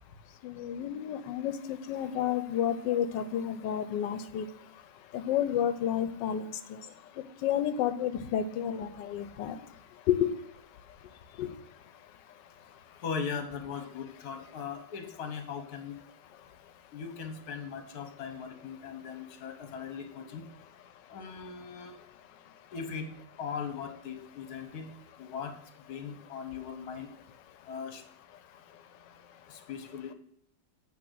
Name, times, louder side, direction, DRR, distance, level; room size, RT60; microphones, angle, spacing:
voice 1, 0.6-4.4 5.3-6.4 7.4-9.5 10.1-10.3 11.4-11.5, left 10 dB, 85° left, 11 dB, 1.3 m, -30 dB
voice 2, 13.0-15.9 16.9-20.4 21.1-22.0 22.7-23.1 23.4-24.9 25.2-25.5 25.9-27.1 27.7-28.0 29.5-30.1, left 6 dB, 60° left, 6 dB, 1.5 m, -39 dB
8.6 x 3.7 x 6.3 m, 0.65 s
omnidirectional pair, 1.9 m